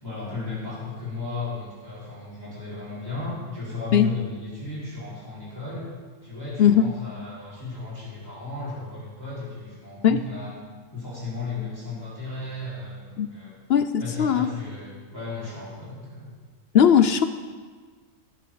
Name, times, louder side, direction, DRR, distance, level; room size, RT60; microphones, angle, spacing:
voice 1, 0.0-5.9 6.2-10.5 10.9-13.5 14.0-16.3, left 3 dB, 15° left, -10 dB, 4.3 m, -35 dB
voice 2, 13.7-14.5 16.7-17.3, left 8 dB, 60° left, 10 dB, 0.7 m, -18 dB
17.0 x 11.0 x 3.9 m, 1.5 s
omnidirectional pair, 1.4 m